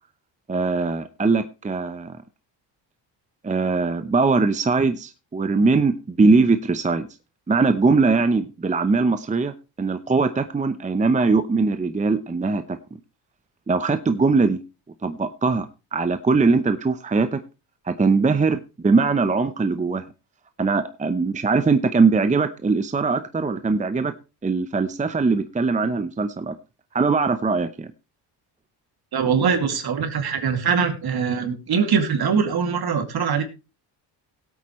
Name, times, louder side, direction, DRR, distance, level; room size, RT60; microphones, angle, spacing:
voice 1, 0.5-2.2 3.4-7.1 7.5-12.8 13.7-14.6 15.0-15.7 15.9-17.4 17.9-20.1 20.6-24.1 24.4-26.6 26.9-27.9, right 4 dB, 15° right, 10 dB, 0.8 m, -21 dB
voice 2, 29.1-33.4, right 6 dB, 55° right, 6 dB, 2.5 m, -22 dB
17.0 x 8.4 x 3.1 m, 0.29 s
cardioid pair, 80°, 45 cm